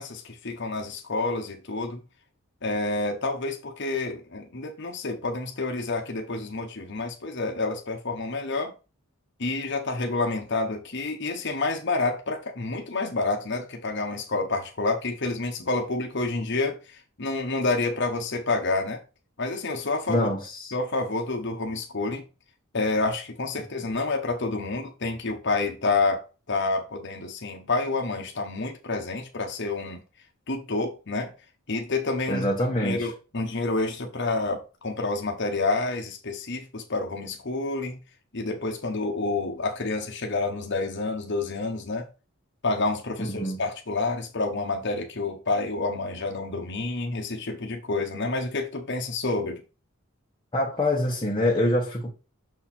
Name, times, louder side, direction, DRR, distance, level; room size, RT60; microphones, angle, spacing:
voice 1, 0.0-2.0 2.6-8.7 9.4-19.0 19.4-20.3 20.7-22.2 22.7-30.0 30.5-31.3 31.7-32.5 32.8-38.0 38.3-42.1 42.6-49.6, left 3 dB, 55° left, 1.2 m, -28 dB
voice 2, 20.1-20.7 32.3-33.1 43.2-43.7 50.5-52.1, left 1 dB, 20° left, 1.2 m, -25 dB
6.5 x 4.4 x 4.4 m
head